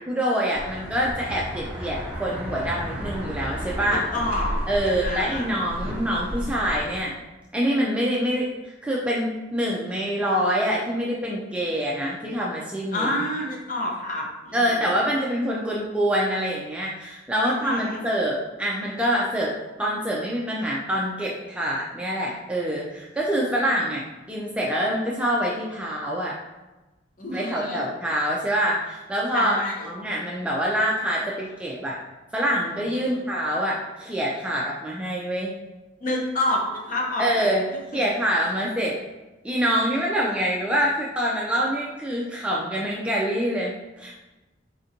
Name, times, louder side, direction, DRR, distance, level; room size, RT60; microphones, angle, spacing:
voice 1, 0.0-4.0 4.7-7.1 7.5-8.5 8.8-13.2 14.5-19.5 19.8-26.3 27.3-29.6 29.8-32.0 32.3-35.5 37.2-37.7 37.9-39.0 39.4-43.7 44.0-44.2, equal, 5° right, -4 dB, 0.3 m, -25 dB
sound 1, 0.5-7.0, equal, 30° right, 1.0 m, -33 dB
voice 2, 3.9-5.5 12.9-14.8 17.4-18.0 27.2-27.8 29.3-29.9 33.0-33.2 36.0-37.5 37.9-38.0, left 1 dB, 40° left, -1 dB, 0.6 m, -29 dB
4.2 x 2.5 x 2.7 m, 1.1 s
head